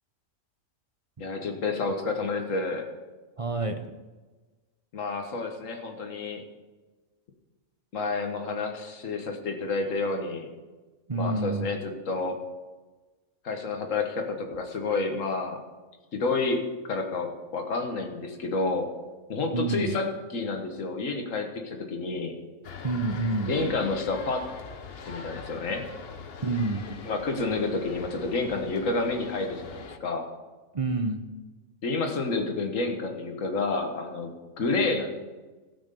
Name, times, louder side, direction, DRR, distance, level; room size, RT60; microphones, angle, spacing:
voice 1, 1.2-2.9 4.9-6.4 7.9-10.5 11.1-12.4 13.4-15.6 16.1-18.9 19.3-20.1 20.3-22.4 23.5-24.5 25.1-25.8 27.1-30.3 31.8-35.1, left 3 dB, 70° left, 4 dB, 1.8 m, -29 dB
voice 2, 3.4-3.8 11.1-11.7 19.5-20.0 22.8-23.5 26.4-26.8 30.7-31.2, right 3 dB, 30° right, 7 dB, 0.7 m, -28 dB
sound 1, 22.6-30.0, left 5 dB, 50° left, 1.0 m, -42 dB
17.0 x 6.1 x 6.8 m, 1.3 s
omnidirectional pair, 1.4 m